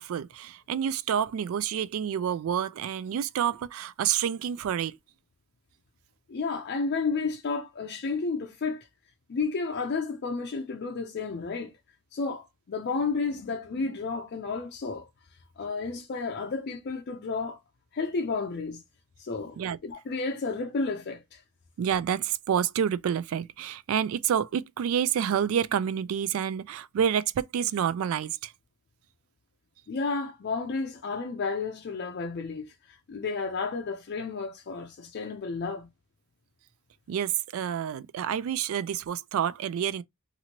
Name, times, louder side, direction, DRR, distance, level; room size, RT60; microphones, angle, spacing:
voice 1, 0.0-5.0 19.6-19.8 21.8-28.5 37.1-40.0, right 8 dB, 80° right, 0.3 m, -28 dB
voice 2, 6.3-8.9 9.3-11.7 12.1-15.1 15.6-17.6 17.9-18.8 19.2-19.6 19.8-21.4 29.9-35.9, left 4 dB, 50° left, 0.4 m, -32 dB
2.9 x 2.5 x 2.8 m
head